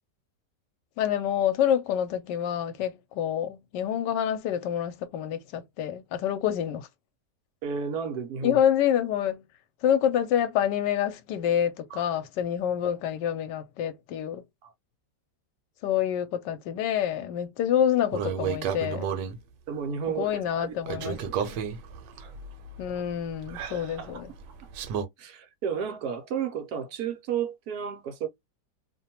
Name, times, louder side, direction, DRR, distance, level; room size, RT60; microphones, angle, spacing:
voice 1, 1.0-6.9 8.4-9.4 9.8-14.4 15.8-19.1 20.2-21.2 21.4-21.6 22.8-24.3, left 10 dB, 85° left, 1.2 m, -27 dB
voice 2, 7.6-8.6 11.9-12.0 14.6-14.7 19.7-21.5 22.2-22.3 24.0-24.2 25.2-28.3, right 7 dB, 70° right, 1.1 m, -33 dB
sound 1, 18.1-19.4 20.9-25.1, right 7 dB, 90° right, 1.3 m, -32 dB
2.9 x 2.2 x 2.7 m
omnidirectional pair, 1.8 m